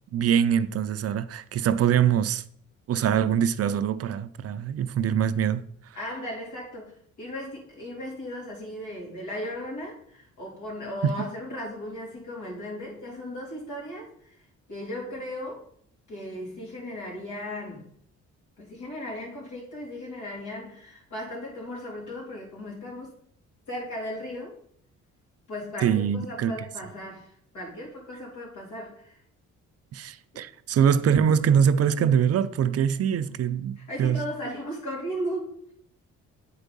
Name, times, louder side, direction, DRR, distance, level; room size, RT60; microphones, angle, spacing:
voice 1, 0.1-2.4 2.9-5.6 11.0-11.1 25.8-26.5 29.9-34.2, right 8 dB, 55° right, 0.5 m, -23 dB
voice 2, 5.9-15.6 16.1-17.9 18.6-23.2 23.7-24.6 25.5-29.2 33.2-33.3 33.8-35.7, equal, 75° left, 3.4 m, -36 dB
8.0 x 4.6 x 5.3 m
cardioid pair, 90°, 30 cm